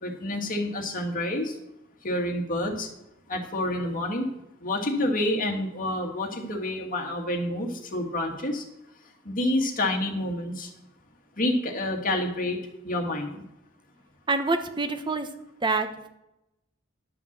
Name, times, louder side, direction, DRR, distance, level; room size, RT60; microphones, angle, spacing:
voice 1, 0.0-1.6 2.0-2.9 3.3-4.3 4.6-8.6 9.3-10.7 11.4-12.6 12.8-13.4, left 1 dB, 45° left, 2 dB, 1.9 m, -28 dB
voice 2, 14.3-15.3 15.6-16.1, right 3 dB, 25° right, 7 dB, 0.9 m, -26 dB
11.0 x 5.8 x 7.4 m, 0.88 s
head